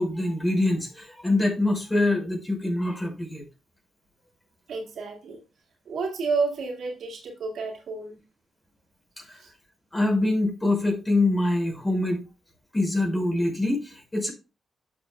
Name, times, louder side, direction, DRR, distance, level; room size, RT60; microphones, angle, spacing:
voice 1, 0.0-3.4 9.9-12.2 12.7-14.3, left 2 dB, 20° left, 1 dB, 5.6 m, -24 dB
voice 2, 4.7-5.4 5.9-8.2 9.3-9.5, right 4 dB, 75° right, 1 dB, 2.1 m, -30 dB
12.0 x 6.9 x 2.3 m, 0.29 s
supercardioid pair, 50°, 0 cm